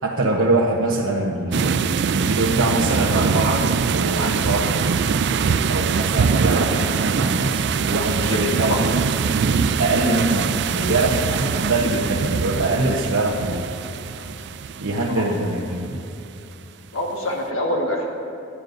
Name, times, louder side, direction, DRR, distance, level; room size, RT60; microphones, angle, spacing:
voice 1, 0.0-4.9 5.7-8.8 9.8-13.6 14.8-16.0, right 2 dB, 85° right, -4 dB, 1.1 m, -23 dB
sound 1, 1.5-16.1, right 6 dB, 55° right, 0.3 m, -23 dB
voice 2, 8.2-8.8 15.1-15.3 16.9-18.1, left 1 dB, 80° left, 0 dB, 1.6 m, -25 dB
19.5 x 12.5 x 2.7 m, 2.8 s
head